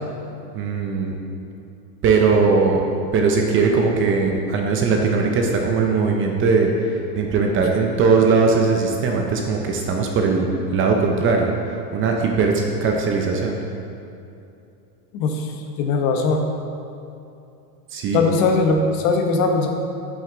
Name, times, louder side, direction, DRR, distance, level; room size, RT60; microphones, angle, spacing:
voice 1, 0.5-1.1 2.0-2.8 3.1-6.7 7.2-11.5 11.9-13.6 17.9-18.2, right 4 dB, 25° right, 2 dB, 0.6 m, -19 dB
voice 2, 15.1-15.5 15.8-16.5 18.1-19.7, left 4 dB, 55° left, 4 dB, 1.1 m, -20 dB
7.9 x 7.7 x 3.9 m, 2.7 s
supercardioid pair, 140°, 48 cm